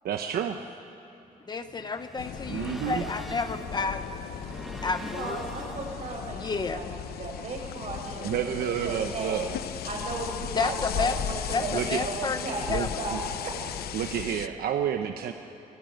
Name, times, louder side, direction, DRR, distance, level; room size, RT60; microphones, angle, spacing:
voice 1, 0.0-0.6 2.5-3.0 8.2-9.5 11.7-12.0 12.7-13.2 13.9-15.3, right 9 dB, 80° right, 6 dB, 1.0 m, -30 dB
sound 1, 1.2-6.4, equal, ahead, 1.3 m, -43 dB
voice 2, 1.5-4.1 4.8-5.4 6.3-6.8 10.6-11.2 11.5-13.0, left 4 dB, 25° left, 8 dB, 0.9 m, -31 dB
sound 2, 2.2-14.5, left 10 dB, 85° left, 0.8 m, -36 dB
voice 3, 4.9-9.5 9.8-13.5, right 3 dB, 50° right, 0 dB, 6.9 m, -35 dB
24.5 x 22.5 x 9.2 m, 2.9 s
cardioid pair, 160°, 16 cm